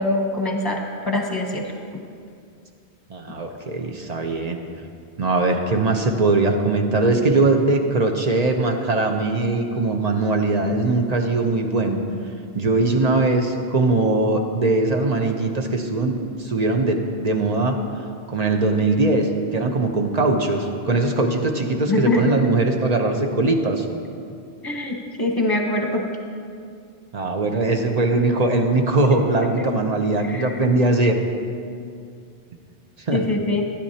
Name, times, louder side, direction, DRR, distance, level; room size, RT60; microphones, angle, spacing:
voice 1, 0.0-1.6 21.9-22.4 24.6-26.1 29.1-29.2 29.6-29.7 30.2-30.6 33.1-33.6, left 2 dB, 20° left, 1 dB, 1.1 m, -23 dB
voice 2, 3.1-4.6 5.2-12.0 12.5-17.8 18.3-23.8 27.1-31.2 33.1-33.3, right 2 dB, 45° right, 3 dB, 0.8 m, -21 dB
15.0 x 10.0 x 2.8 m, 2.4 s
omnidirectional pair, 1.1 m